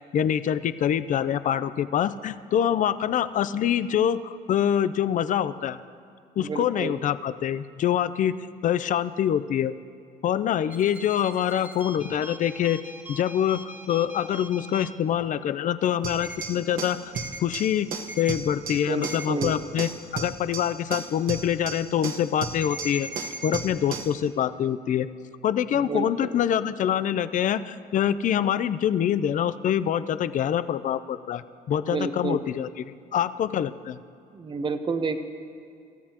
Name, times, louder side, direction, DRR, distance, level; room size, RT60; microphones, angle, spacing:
voice 1, 0.1-5.8 6.4-8.4 8.6-9.7 10.2-12.8 13.1-17.1 17.4-17.9 18.2-23.1 23.4-25.1 25.4-32.7 33.1-34.0, left 10 dB, 50° left, 14 dB, 0.5 m, -25 dB
voice 2, 6.4-7.0 18.7-19.6 25.7-26.3 31.9-32.4 34.3-35.2, right 4 dB, 30° right, 8 dB, 1.0 m, -30 dB
sound 1, 10.7-14.9 16.2-16.5 17.1-17.4 18.1-18.3 19.0-19.3 22.6-23.6, right 1 dB, 10° right, 1.5 m, -40 dB
sound 2, 16.0-24.2, right 5 dB, 55° right, 1.3 m, -35 dB
26.5 x 14.0 x 3.0 m, 2.4 s
cardioid pair, 110°, 17 cm